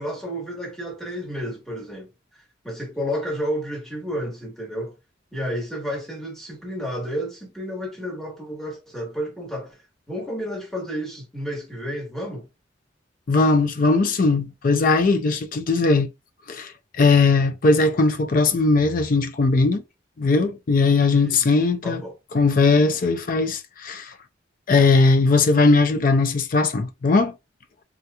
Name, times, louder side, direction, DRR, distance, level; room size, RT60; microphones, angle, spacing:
voice 1, 0.0-2.1 2.3-4.9 5.3-9.8 10.1-12.5 21.1-21.5 21.8-22.1, equal, ahead, 1.2 m, -31 dB
voice 2, 13.3-16.1 16.5-16.7 17.0-19.8 20.2-22.0 22.3-24.1 24.7-27.3, left 3 dB, 50° left, 0.4 m, -19 dB
3.7 x 2.9 x 2.2 m
head